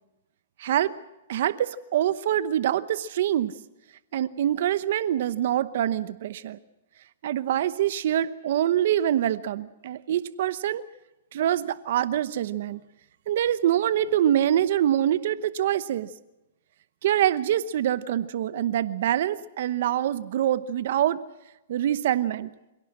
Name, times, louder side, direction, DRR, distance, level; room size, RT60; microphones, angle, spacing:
voice 1, 0.6-0.9 1.3-3.5 4.1-6.6 7.2-10.8 11.3-12.8 13.3-16.1 17.0-21.2 21.7-22.5, right 11 dB, 60° right, 15 dB, 0.9 m, -25 dB
26.5 x 17.5 x 7.6 m, 0.98 s
hypercardioid pair, 150°, 0 cm